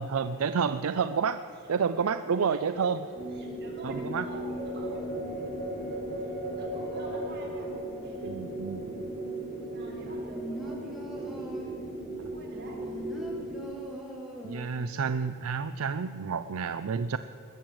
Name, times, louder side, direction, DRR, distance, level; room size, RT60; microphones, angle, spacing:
voice 1, 0.0-1.4 1.7-3.0 3.8-4.3 8.3-9.1 14.4-17.2, right 6 dB, 75° right, 11 dB, 0.5 m, -29 dB
voice 2, 0.9-1.2 1.5-1.7 2.5-5.0 5.4-5.5 6.2-7.7 8.0-8.5 9.7-11.5 12.3-13.3, right 1 dB, 50° right, -2 dB, 4.2 m, -48 dB
sound 1, 3.1-13.6, right 1 dB, 25° right, 5.0 m, -36 dB
sound 2, 10.0-11.9 12.5-14.9 15.2-15.3, equal, ahead, 2.2 m, -42 dB
20.0 x 7.5 x 8.8 m, 2.4 s
head